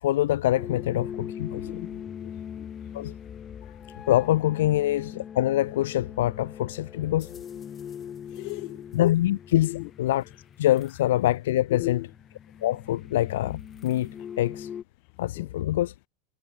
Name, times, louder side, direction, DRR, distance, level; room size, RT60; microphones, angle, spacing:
voice 1, 0.0-1.8 2.9-3.2 4.1-7.4 8.9-10.3 10.6-12.1 12.6-14.1 14.4-14.7 15.2-15.9, left 14 dB, 85° left, 1.2 m, -25 dB
sound 1, 0.5-14.8, left 8 dB, 30° left, 7.0 m, -41 dB
voice 2, 1.5-2.3 2.6-2.7 8.3-8.8 9.6-9.8 11.7-12.0 15.4-15.5, left 39 dB, 60° left, 6.6 m, -36 dB
supercardioid pair, 115°, 0 cm